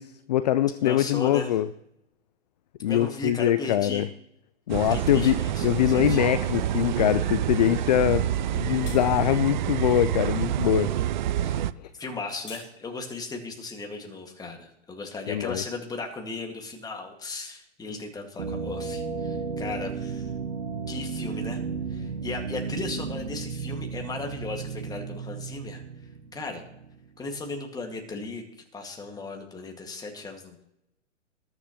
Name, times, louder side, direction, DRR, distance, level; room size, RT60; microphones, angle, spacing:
voice 1, 0.0-1.7 2.8-4.1 4.7-8.3 8.5-10.9 11.8-11.9 15.3-15.6, left 12 dB, 35° left, 15 dB, 0.4 m, -23 dB
voice 2, 0.8-1.5 2.8-4.0 4.9-6.2 11.4-11.6 12.0-20.3 20.9-21.6 21.9-25.8 26.3-26.6 27.2-28.4 28.7-30.6, left 3 dB, 10° left, 2 dB, 1.9 m, -36 dB
sound 1, 4.7-11.7, right 11 dB, 40° right, 0.4 m, -27 dB
Small metal bucket being set down, 8.3-8.5 8.8-9.0 12.0-12.7, left 4 dB, 65° left, 5.1 m, -44 dB
sound 2, 18.4-27.1, right 5 dB, 75° right, 2.1 m, -34 dB
20.5 x 9.9 x 3.0 m, 0.83 s
figure-of-eight pair, 120°, 39 cm